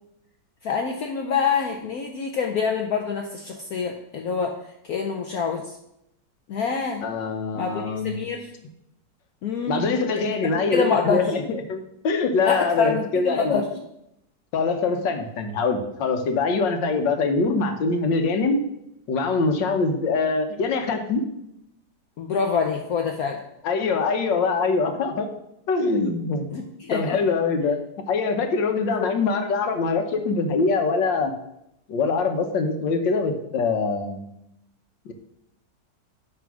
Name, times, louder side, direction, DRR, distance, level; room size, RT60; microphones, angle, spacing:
voice 1, 0.6-4.6 4.9-5.8 6.5-7.0 7.5-8.5 9.4-9.8 10.5-11.3 12.5-13.7 22.2-23.4 26.5-27.2, left 5 dB, 65° left, 2 dB, 1.1 m, -26 dB
voice 2, 7.0-8.2 9.7-13.6 14.5-18.6 19.1-21.2 23.6-25.3 25.7-26.6 26.9-27.8 28.1-31.3 31.9-34.3 35.1-35.2, left 4 dB, 85° left, 6 dB, 1.7 m, -23 dB
9.2 x 3.8 x 6.2 m, 0.80 s
omnidirectional pair, 1.9 m